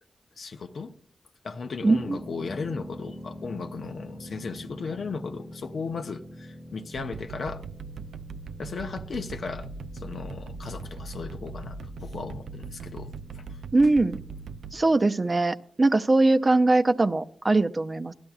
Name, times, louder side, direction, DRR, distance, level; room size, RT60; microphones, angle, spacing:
voice 1, 0.4-0.9 1.4-7.6 8.6-9.7 9.9-13.6, left 4 dB, 70° left, 0.6 m, -36 dB
sound 1, 1.8-15.0, equal, 15° left, 1.2 m, -45 dB
voice 2, 1.8-2.2 13.7-14.2 14.7-18.1, right 2 dB, 40° right, 0.5 m, -21 dB
sound 2, 6.9-14.7, right 4 dB, 90° right, 0.3 m, -40 dB
16.0 x 12.0 x 2.4 m
cardioid pair, 45°, 0 cm